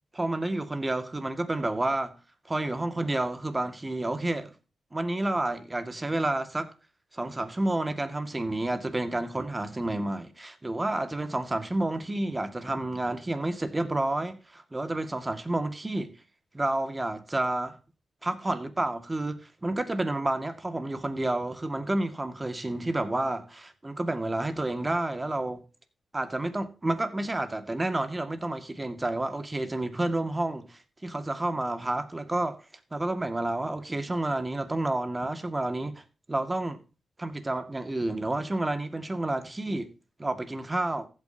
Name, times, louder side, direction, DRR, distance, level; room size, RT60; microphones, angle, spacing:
voice 1, 0.1-2.2 2.5-4.5 4.9-6.7 7.1-16.1 16.5-17.8 18.2-25.6 26.1-32.6 32.9-36.0 36.3-36.8 37.2-39.9 40.2-41.1, right 2 dB, 20° right, 2.1 m, -30 dB
15.0 x 9.0 x 2.9 m
cardioid pair, 75°, 0 cm